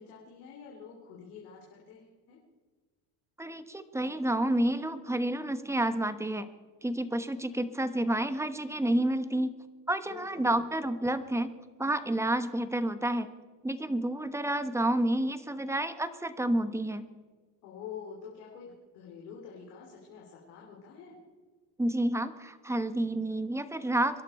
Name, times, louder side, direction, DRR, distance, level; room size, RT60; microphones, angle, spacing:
voice 1, 0.0-2.4 10.0-10.6 17.6-21.2, left 7 dB, 90° left, -3 dB, 3.2 m, -47 dB
voice 2, 3.4-6.5 6.8-9.5 9.9-11.5 11.8-13.3 13.6-17.1 21.8-24.2, right 1 dB, 5° right, 11 dB, 1.1 m, -29 dB
24.5 x 11.5 x 4.3 m, 1.4 s
supercardioid pair, 100°, 45 cm